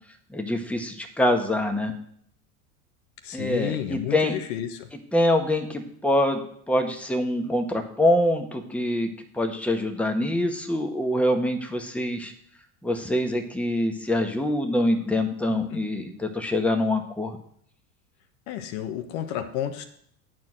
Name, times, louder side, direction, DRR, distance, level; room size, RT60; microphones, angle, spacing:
voice 1, 0.3-1.9 3.3-4.3 5.1-12.3 12.8-17.4, left 1 dB, 5° left, 4 dB, 1.5 m, -25 dB
voice 2, 3.2-4.9 15.5-15.8 18.5-19.8, left 10 dB, 65° left, 8 dB, 1.3 m, -31 dB
10.5 x 4.6 x 7.6 m, 0.65 s
hypercardioid pair, 90°, 47 cm